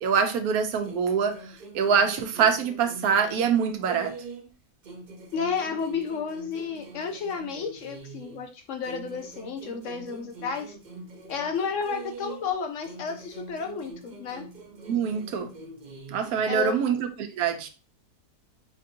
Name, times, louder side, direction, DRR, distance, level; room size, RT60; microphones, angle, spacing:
voice 1, 0.0-4.1 14.8-15.5 16.1-17.7, right 6 dB, 80° right, 1.1 m, -25 dB
sound 1, 0.8-4.5 4.8-8.5 8.8-12.5 12.8-16.5, right 3 dB, 50° right, 0.5 m, -44 dB
voice 2, 5.3-10.8 11.3-14.5 16.4-16.7, left 6 dB, 70° left, 0.8 m, -32 dB
5.1 x 2.6 x 2.7 m
omnidirectional pair, 1.6 m